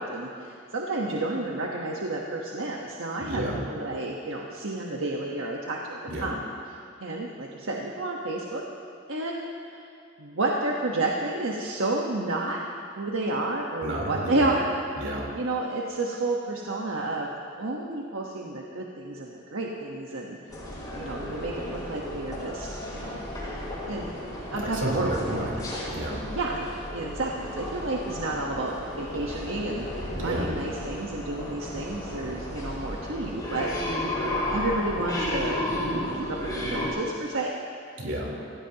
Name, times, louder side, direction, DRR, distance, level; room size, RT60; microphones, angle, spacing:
voice 1, 0.0-6.4 6.7-8.6 9.1-9.8 10.2-12.6 12.9-14.7 15.3-20.4 20.9-23.2 23.9-24.1 24.5-25.5 26.3-33.7 34.5-35.6 36.1-37.5, right 2 dB, 85° right, -2 dB, 1.3 m, -31 dB
voice 2, 3.2-3.6 6.1-6.3 13.8-14.5 15.0-15.3 24.7-25.5 25.9-26.2 30.2-30.5 38.0-38.3, right 1 dB, 65° right, -3 dB, 3.9 m, -31 dB
sound 1, 20.5-36.9, left 1 dB, 20° left, 4.9 m, -33 dB
27.0 x 16.0 x 3.0 m, 2.4 s
head